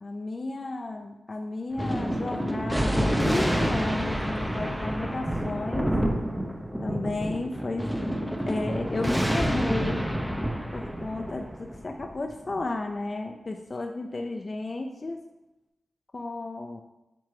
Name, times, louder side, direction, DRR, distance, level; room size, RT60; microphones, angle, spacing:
voice 1, 0.0-5.9 6.8-7.9 8.2-10.1 10.7-15.2 16.1-16.8, left 2 dB, 45° left, 4 dB, 0.5 m, -33 dB
Thunder, 1.7-12.6, equal, 5° right, 0.7 m, -28 dB
7.5 x 3.1 x 4.7 m, 0.96 s
cardioid pair, 55°, 0 cm